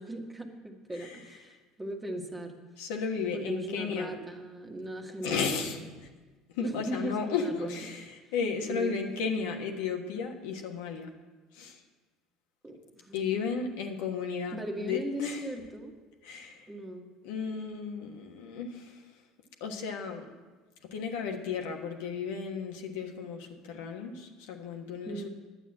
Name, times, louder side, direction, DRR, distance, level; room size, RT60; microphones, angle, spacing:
voice 1, 0.0-2.6 3.3-5.9 6.6-7.9 8.2-8.3 8.7-9.0 12.6-13.2 14.5-15.9 16.7-17.1 25.0-25.3, right 1 dB, 15° right, 2 dB, 1.6 m, -38 dB
voice 2, 2.8-4.1 5.2-5.8 6.5-11.1 11.5-11.8 13.1-15.5 16.2-16.6 17.2-19.0 19.6-20.3 20.9-25.3, left 5 dB, 80° left, 3 dB, 1.3 m, -34 dB
10.0 x 8.2 x 7.4 m, 1.3 s
hypercardioid pair, 80°, 0 cm